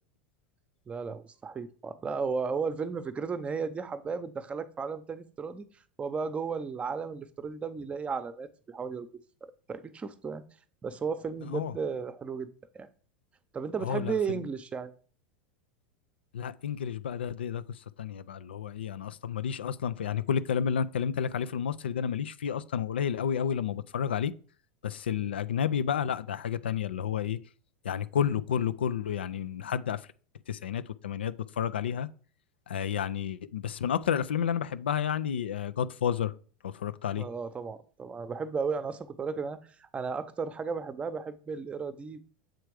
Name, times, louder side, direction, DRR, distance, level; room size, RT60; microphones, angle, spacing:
voice 1, 0.9-5.7 6.0-9.1 9.4-10.4 10.8-12.5 12.7-12.9 13.5-14.9 25.2-25.3 37.2-42.3, right 5 dB, 20° right, 0.7 m, -34 dB
voice 2, 11.4-11.7 13.8-14.5 16.3-24.3 24.8-27.4 27.8-30.1 30.5-32.1 32.7-36.3 36.6-37.3, left 8 dB, 85° left, 0.4 m, -31 dB
7.6 x 3.4 x 4.8 m
hypercardioid pair, 95°, 6 cm